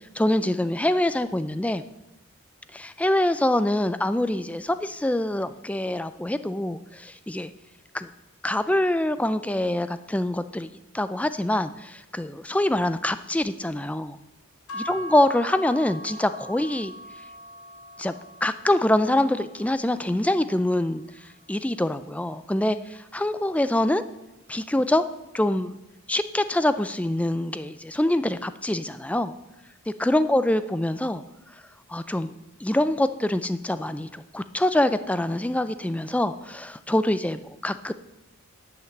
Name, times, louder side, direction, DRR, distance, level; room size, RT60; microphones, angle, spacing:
voice 1, 0.1-1.8 2.7-7.5 7.9-8.1 8.4-10.7 10.9-14.2 14.7-16.9 18.0-18.1 18.4-21.0 21.5-24.0 24.5-25.0 25.3-25.7 26.1-29.3 30.0-31.2 31.9-32.3 32.6-37.9, left 1 dB, 5° left, 12 dB, 0.3 m, -25 dB
sound 1, 14.7-22.9, equal, 80° left, 1.3 m, -43 dB
10.5 x 5.9 x 7.7 m, 0.96 s
head